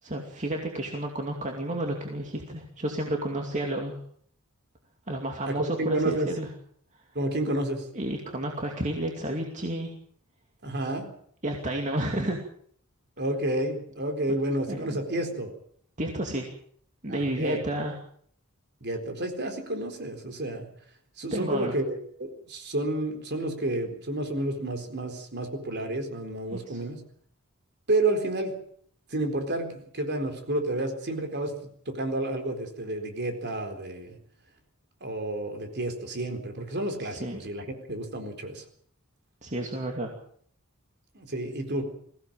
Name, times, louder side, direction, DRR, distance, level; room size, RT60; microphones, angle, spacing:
voice 1, 0.0-4.0 5.1-6.5 7.9-9.9 11.4-12.4 14.7-14.8 16.0-16.5 17.0-17.9 21.3-21.7 26.5-26.8 37.0-37.4 39.4-40.1, right 1 dB, 35° right, 1 dB, 2.5 m, -31 dB
voice 2, 5.5-6.3 7.1-7.9 10.6-11.1 13.2-15.5 17.1-17.9 18.8-20.7 21.2-27.0 27.9-28.6 29.1-34.2 35.0-38.6 41.1-41.8, right 1 dB, 50° right, 5 dB, 4.1 m, -30 dB
22.0 x 16.5 x 7.5 m, 0.62 s
head